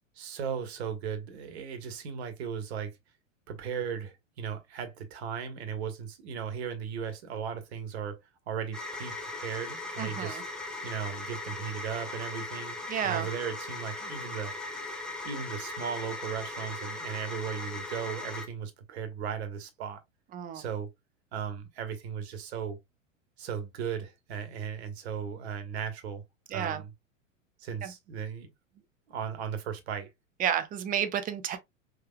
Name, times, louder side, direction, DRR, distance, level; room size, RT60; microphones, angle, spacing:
voice 1, 0.1-3.0 3.5-10.4 10.8-14.5 15.2-20.0 20.5-20.9 21.3-22.8 23.4-26.2 26.5-26.9 27.6-28.5 29.1-30.1, right 7 dB, 55° right, 1.4 m, -36 dB
sound 1, 8.7-18.5, left 2 dB, ahead, 0.9 m, -39 dB
voice 2, 10.0-10.4 12.9-13.3 20.3-20.6 26.5-26.8 27.8-27.9 30.4-31.6, right 9 dB, 20° right, 0.7 m, -31 dB
5.4 x 3.3 x 2.2 m
figure-of-eight pair, 95°, 40 cm